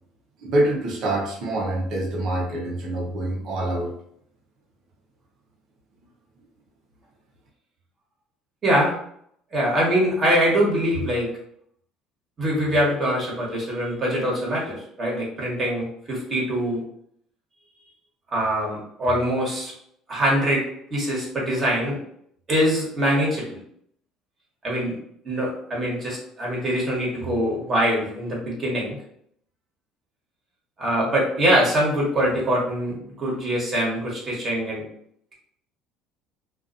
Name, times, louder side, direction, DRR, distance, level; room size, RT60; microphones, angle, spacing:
voice 1, 0.4-3.9, right 1 dB, 60° right, -2 dB, 0.8 m, -25 dB
voice 2, 8.6-8.9 9.5-11.3 12.4-16.8 18.3-19.7 20.1-22.0 22.5-23.6 24.6-25.0 25.2-29.0 30.8-34.8, equal, 40° right, -4 dB, 1.2 m, -23 dB
2.5 x 2.3 x 2.5 m, 0.68 s
hypercardioid pair, 75°, 0 cm